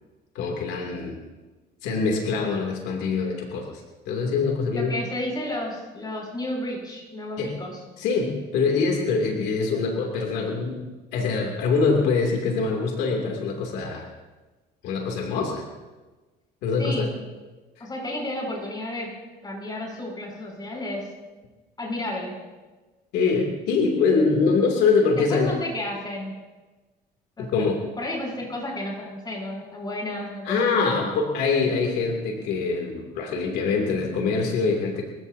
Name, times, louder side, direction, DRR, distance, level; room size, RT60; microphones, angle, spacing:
voice 1, 0.3-1.2 1.8-4.9 7.4-7.5 8.0-10.8 11.1-14.1 14.8-15.6 16.6-17.1 17.8-17.9 23.1-25.6 27.4-27.8 30.4-35.0, left 4 dB, 90° left, 1 dB, 2.8 m, -24 dB
voice 2, 4.7-7.8 16.8-17.1 17.8-21.1 21.8-22.4 25.1-26.4 27.4-27.6 28.0-31.1, left 1 dB, 25° left, -2 dB, 7.3 m, -32 dB
29.5 x 15.5 x 2.8 m, 1.2 s
cardioid pair, 110°, 17 cm